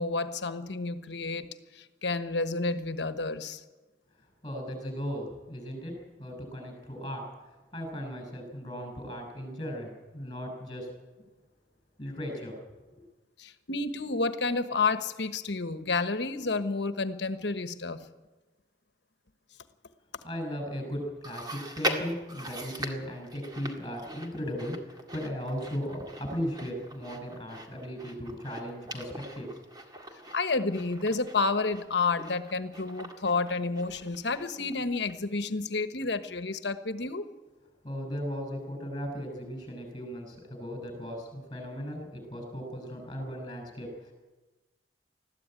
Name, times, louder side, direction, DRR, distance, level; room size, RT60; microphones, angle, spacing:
voice 1, 0.0-3.6 13.4-18.1 30.3-37.3, left 3 dB, 65° left, 10 dB, 1.2 m, -30 dB
voice 2, 4.4-7.3 7.7-10.9 12.0-12.6 13.0-13.1 20.2-29.6 37.8-44.1, equal, 25° left, 4 dB, 6.3 m, -37 dB
Chewing mastication, 21.2-34.8 35.1-35.2 36.0-36.1, right 1 dB, 20° right, 1.9 m, -41 dB
21.0 x 14.0 x 9.0 m, 1.2 s
head